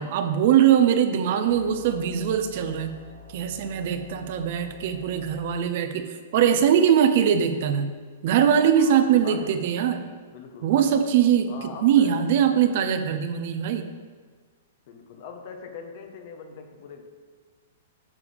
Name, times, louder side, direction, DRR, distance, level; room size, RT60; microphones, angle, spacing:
voice 1, 0.0-2.9 3.3-7.9 8.2-10.0 10.6-13.9, right 9 dB, 50° right, 8 dB, 0.6 m, -21 dB
sound 1, 1.5-5.6, left 3 dB, 65° left, 2.4 m, -45 dB
voice 2, 8.8-9.5 10.3-10.7 11.5-12.1 14.9-17.0, left 6 dB, 50° left, 4 dB, 1.1 m, -42 dB
9.6 x 6.9 x 3.5 m, 1.5 s
hypercardioid pair, 160°, 0 cm